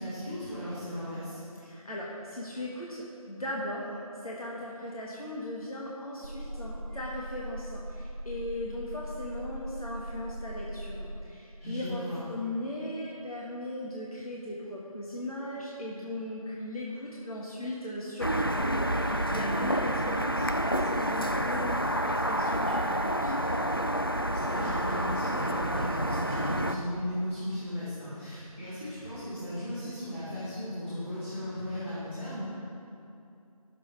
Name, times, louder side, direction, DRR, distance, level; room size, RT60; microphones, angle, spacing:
voice 1, 0.0-1.4 11.6-12.2 19.3-19.6 24.1-32.4, left 1 dB, 20° left, -15 dB, 2.1 m, -36 dB
voice 2, 1.6-23.6, left 1 dB, 70° left, -5 dB, 1.6 m, -38 dB
sound 1, 6.2-11.2, right 1 dB, 90° right, 1.1 m, -40 dB
sound 2, 18.2-26.8, equal, 40° left, 0.4 m, -29 dB
14.0 x 6.9 x 3.4 m, 2.6 s
figure-of-eight pair, 175°, 19 cm